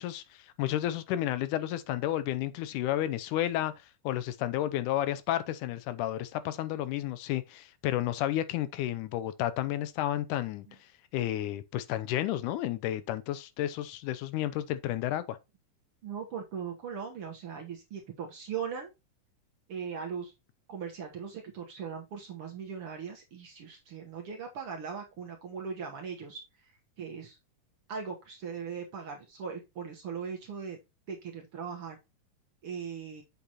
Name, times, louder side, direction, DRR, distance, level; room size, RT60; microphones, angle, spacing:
voice 1, 0.0-3.7 4.0-10.7 11.1-15.4, left 13 dB, 85° left, 2.1 m, -31 dB
voice 2, 16.0-18.9 19.7-20.3 20.7-27.4 27.9-30.8 31.1-32.0 32.6-33.2, right 6 dB, 60° right, 1.6 m, -39 dB
7.5 x 7.0 x 2.9 m
omnidirectional pair, 3.7 m